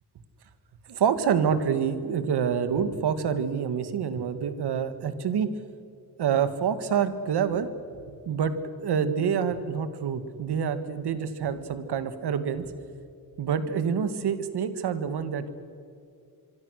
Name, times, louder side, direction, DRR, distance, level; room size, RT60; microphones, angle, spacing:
voice 1, 0.9-5.5 6.2-7.7 8.1-8.5 8.8-12.6 13.4-15.5, right 7 dB, 80° right, 10 dB, 1.9 m, -27 dB
25.5 x 24.0 x 6.5 m, 2.4 s
wide cardioid pair, 140°, 39 cm